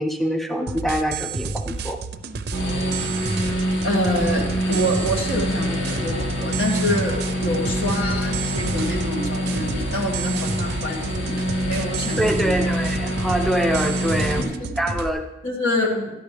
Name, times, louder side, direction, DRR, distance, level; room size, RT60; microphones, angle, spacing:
voice 1, 0.0-2.0 12.2-14.4 14.8-15.2, right 1 dB, ahead, 5 dB, 0.4 m, -24 dB
sound 1, 0.7-15.1, right 4 dB, 55° right, 0.6 m, -31 dB
sound 2, 2.5-14.4, equal, 60° left, 1.7 m, -26 dB
voice 2, 3.8-11.3 11.6-12.6 14.3-14.7 15.4-16.1, equal, 90° left, -1 dB, 2.3 m, -26 dB
13.0 x 11.0 x 3.4 m, 0.95 s
head